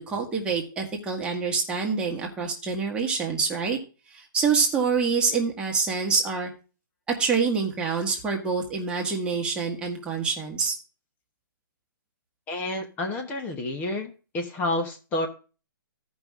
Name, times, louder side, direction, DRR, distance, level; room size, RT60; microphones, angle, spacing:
voice 1, 0.0-3.8 4.1-6.5 7.2-10.7, right 5 dB, 10° right, 0 dB, 1.5 m, -26 dB
voice 2, 12.5-15.3, left 2 dB, 15° left, 6 dB, 1.0 m, -29 dB
14.5 x 5.4 x 3.6 m, 0.34 s
hypercardioid pair, 165°, 12 cm